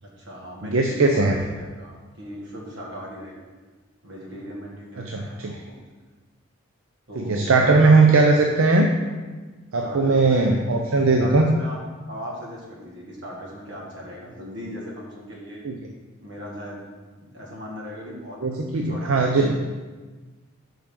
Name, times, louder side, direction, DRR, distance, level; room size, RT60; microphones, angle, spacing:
voice 1, 0.0-3.4 4.0-5.8 7.1-8.0 9.8-10.7 11.2-11.8 12.1-15.6 16.2-16.8 17.2-19.7, equal, 55° right, -3 dB, 1.7 m, -38 dB
voice 2, 0.6-1.4 5.0-5.6 7.2-8.9 9.7-11.5 15.6-15.7 18.4-19.6, right 3 dB, 70° right, 3 dB, 0.6 m, -19 dB
8.9 x 5.3 x 3.8 m, 1.3 s
head